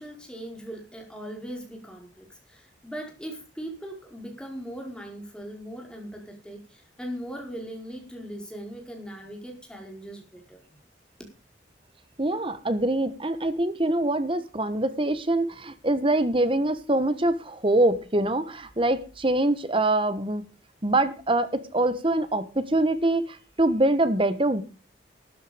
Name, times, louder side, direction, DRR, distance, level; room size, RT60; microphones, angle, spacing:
voice 1, 0.0-10.6, equal, 5° left, 4.7 m, -39 dB
voice 2, 12.2-20.4 20.8-24.6, right 1 dB, 30° right, 1.4 m, -24 dB
13.5 x 10.5 x 5.1 m
head